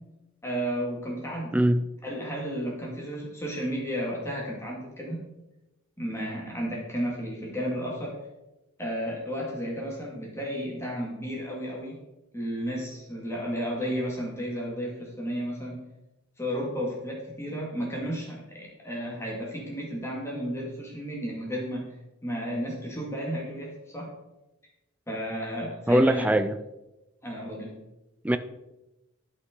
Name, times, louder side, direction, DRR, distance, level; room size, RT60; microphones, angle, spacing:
voice 1, 0.4-1.7 2.0-5.2 6.0-8.1 8.8-12.0 12.3-15.8 16.4-21.8 22.2-24.1 25.1-26.3 27.2-27.7, equal, 15° left, -3 dB, 1.9 m, -33 dB
voice 2, 1.5-1.8 25.9-26.6 28.2-28.4, right 1 dB, 5° right, 11 dB, 0.3 m, -21 dB
13.0 x 5.5 x 3.8 m, 0.97 s
head